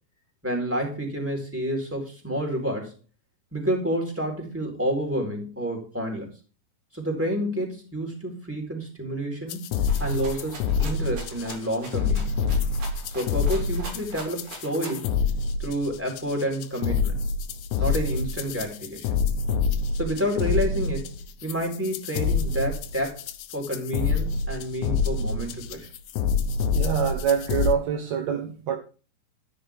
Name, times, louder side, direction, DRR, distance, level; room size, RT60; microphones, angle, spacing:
voice 1, 0.4-3.0 3.5-6.3 6.9-9.6 10.0-12.3 13.1-15.1 15.6-17.1 17.8-19.1 19.9-23.2 23.5-25.9, right 1 dB, 5° right, 3.5 m, -29 dB
sound 1, 9.5-27.7, left 5 dB, 80° left, 3.0 m, -27 dB
Rattle (instrument), 9.9-15.1, right 3 dB, 60° right, 5.7 m, -42 dB
voice 2, 26.7-28.8, right 7 dB, 90° right, 1.5 m, -25 dB
14.0 x 10.0 x 3.5 m
omnidirectional pair, 4.9 m